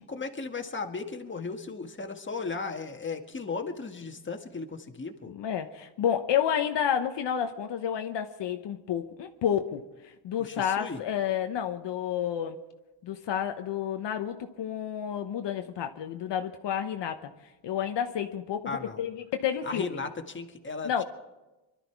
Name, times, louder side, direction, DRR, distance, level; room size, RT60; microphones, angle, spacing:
voice 1, 0.0-5.3 10.5-11.0 18.7-19.0 19.6-21.0, left 4 dB, 25° left, 4 dB, 1.8 m, -36 dB
voice 2, 5.3-12.6 13.0-17.3 17.6-20.0 20.8-21.0, left 9 dB, 65° left, 6 dB, 1.1 m, -30 dB
23.5 x 12.0 x 4.7 m, 1.1 s
cardioid pair, 75°, 45 cm